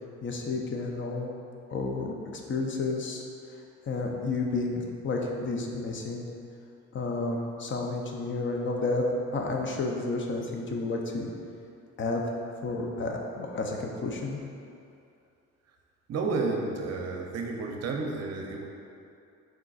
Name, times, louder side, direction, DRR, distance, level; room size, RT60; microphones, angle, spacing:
voice 1, 0.2-1.3 1.7-2.1 2.5-3.2 3.9-6.3 6.9-9.0 9.3-11.3 12.0-12.2 12.6-14.4, left 3 dB, 40° left, 1 dB, 0.6 m, -31 dB
voice 2, 16.1-18.7, right 3 dB, 55° right, 1 dB, 0.6 m, -31 dB
4.8 x 3.8 x 2.4 m, 2.5 s
cardioid pair, 90°, 30 cm